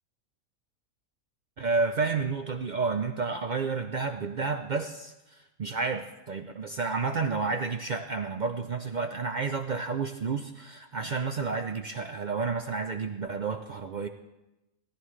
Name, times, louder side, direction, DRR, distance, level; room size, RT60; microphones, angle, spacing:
voice 1, 1.6-14.1, right 4 dB, 70° right, 6 dB, 0.4 m, -31 dB
17.5 x 14.5 x 3.2 m, 0.96 s
omnidirectional pair, 1.5 m